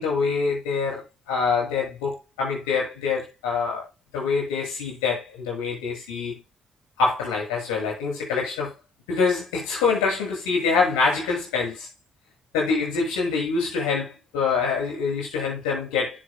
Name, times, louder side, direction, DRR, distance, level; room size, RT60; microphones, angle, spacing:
voice 1, 0.0-3.8 4.1-6.4 7.0-8.7 9.1-11.9 12.5-16.2, left 4 dB, 85° left, 7.3 m, -25 dB
15.0 x 7.5 x 2.3 m
hypercardioid pair, 45°, 3 cm